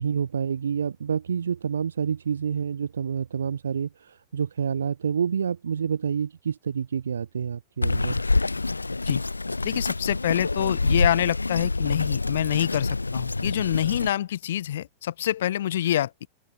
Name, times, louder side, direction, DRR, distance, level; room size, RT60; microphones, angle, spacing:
voice 1, 0.0-8.2, right 7 dB, 70° right, 4.3 m, -28 dB
Bird vocalization bird call bird song, 7.8-14.1, left 3 dB, 80° left, 4.3 m, -26 dB
voice 2, 9.6-16.3, left 12 dB, 60° left, 3.8 m, -26 dB
figure-of-eight pair, 90°, 0 cm